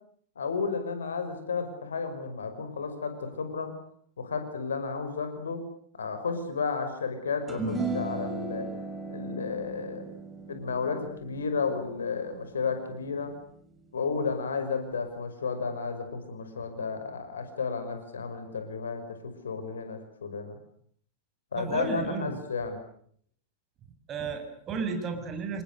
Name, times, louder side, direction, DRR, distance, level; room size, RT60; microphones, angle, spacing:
voice 1, 0.4-3.7 4.2-5.6 5.9-8.7 9.1-10.0 10.5-13.3 13.9-20.6 21.5-22.8, left 5 dB, 70° left, 8 dB, 5.7 m, -32 dB
sound 1, 7.5-14.0, right 3 dB, 10° right, 6.0 m, -37 dB
voice 2, 21.5-22.4 24.1-25.6, right 5 dB, 30° right, 6 dB, 7.2 m, -33 dB
29.5 x 28.5 x 6.7 m, 0.62 s
figure-of-eight pair, 90°, 0 cm